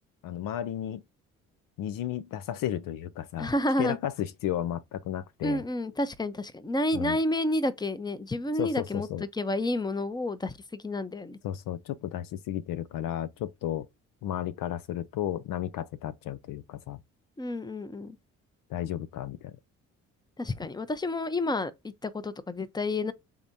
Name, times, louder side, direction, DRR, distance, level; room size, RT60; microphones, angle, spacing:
voice 1, 0.2-1.0 1.8-3.5 3.8-5.6 6.9-7.2 8.6-9.2 11.4-13.9 14.2-17.0 18.7-19.5, left 11 dB, 70° left, 0.6 m, -33 dB
voice 2, 3.4-4.0 5.4-9.1 9.3-11.4 17.4-18.2 20.4-23.1, left 1 dB, 10° left, 0.7 m, -30 dB
4.8 x 3.6 x 2.7 m
hypercardioid pair, 50°, 35 cm